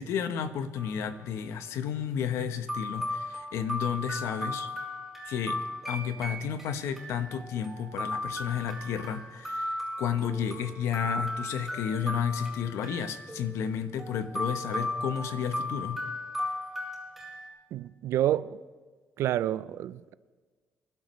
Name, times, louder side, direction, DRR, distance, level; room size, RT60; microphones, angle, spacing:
voice 1, 0.0-4.7 5.3-5.6 5.9-16.0, left 8 dB, 85° left, 1.0 m, -32 dB
sound 1, 0.8-1.3 2.2-2.3 2.7-17.5, left 1 dB, ahead, 4.5 m, -36 dB
voice 2, 17.7-18.6 19.2-20.1, right 12 dB, 75° right, 0.4 m, -28 dB
24.5 x 12.0 x 3.2 m
cardioid pair, 135°, 5 cm